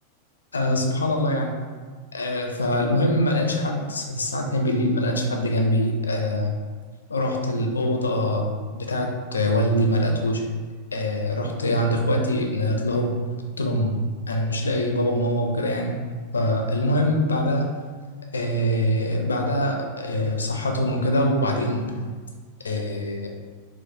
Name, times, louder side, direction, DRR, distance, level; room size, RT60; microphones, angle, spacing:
voice 1, 0.5-1.5 2.1-6.5 7.1-8.5 8.7-10.4 10.9-13.1 13.6-14.0 14.3-16.0 16.3-17.7 18.3-22.1 22.6-23.3, left 1 dB, 75° left, 2 dB, 0.4 m, -23 dB
4.6 x 2.0 x 2.7 m, 1.5 s
figure-of-eight pair, 90°, 0 cm